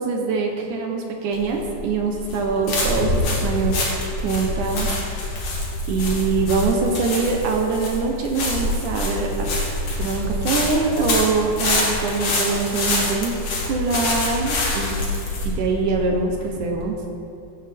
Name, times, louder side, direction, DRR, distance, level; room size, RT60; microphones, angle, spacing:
voice 1, 0.0-3.9 4.2-4.9 5.9-9.3 10.0-13.3 13.7-15.0 15.4-17.0, right 4 dB, 75° right, 2 dB, 1.9 m, -23 dB
sound 1, 1.3-16.8, left 2 dB, 50° left, 2.2 m, -25 dB
15.5 x 8.9 x 3.5 m, 2.7 s
omnidirectional pair, 4.5 m